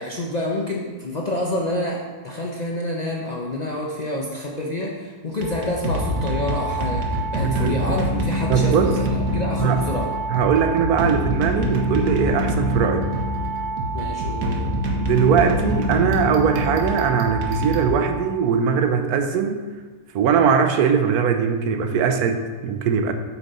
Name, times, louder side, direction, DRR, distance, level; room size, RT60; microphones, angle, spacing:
voice 1, 0.0-10.1 13.9-14.7, left 1 dB, 45° left, -2 dB, 0.6 m, -28 dB
sound 1, 5.3-18.5, equal, 65° right, 1.4 m, -25 dB
voice 2, 7.4-7.8 8.5-8.9 9.6-9.8 10.3-13.1 15.0-19.7 20.1-23.1, right 7 dB, 85° right, 7 dB, 1.1 m, -20 dB
7.2 x 5.3 x 4.2 m, 1.4 s
omnidirectional pair, 1.6 m